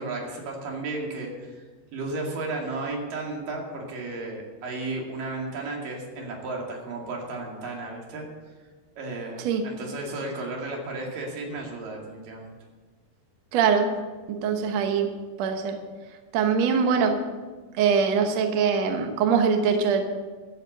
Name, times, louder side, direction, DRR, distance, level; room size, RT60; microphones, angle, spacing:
voice 1, 0.0-1.5 1.9-8.3 9.0-12.6, right 2 dB, 60° right, -1 dB, 3.8 m, -33 dB
voice 2, 13.5-13.9 14.3-15.1 15.4-15.8 16.3-17.2 17.8-20.0, right 6 dB, 75° right, 5 dB, 1.5 m, -22 dB
14.0 x 8.1 x 6.6 m, 1.3 s
omnidirectional pair, 4.6 m